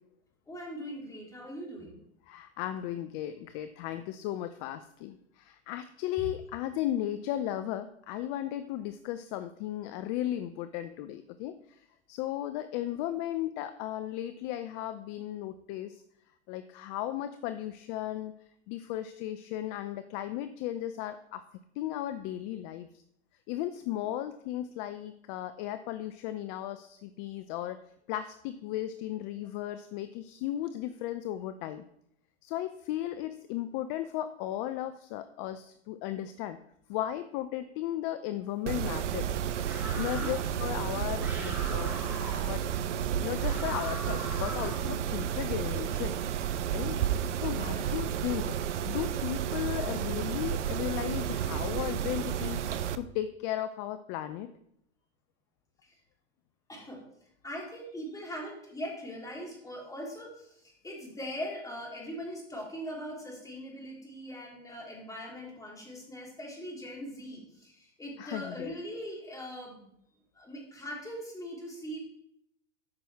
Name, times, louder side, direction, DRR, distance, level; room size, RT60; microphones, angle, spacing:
voice 1, 0.5-2.0 24.0-24.1 40.1-40.3 47.6-48.0 55.8-56.0 56.7-57.0 57.4-69.9 70.3-72.0, equal, 10° left, -3 dB, 3.4 m, -41 dB
voice 2, 2.3-11.8 12.1-16.0 16.5-18.3 18.7-21.4 21.8-22.9 23.5-27.8 28.1-31.8 32.4-36.6 36.9-39.3 40.0-42.0 42.4-42.7 43.1-46.2 46.7-47.0 47.3-48.5 48.8-52.7 53.0-54.5 68.2-68.8, left 12 dB, 40° left, 11 dB, 0.6 m, -35 dB
Mechanisms, 38.7-53.0, right 9 dB, 80° right, 0.7 m, -32 dB
sound 1, 39.7-40.5 41.2-42.5 43.4-44.9, equal, 5° right, 4.2 m, -41 dB
13.0 x 5.9 x 3.5 m, 0.73 s
hypercardioid pair, 105°, 36 cm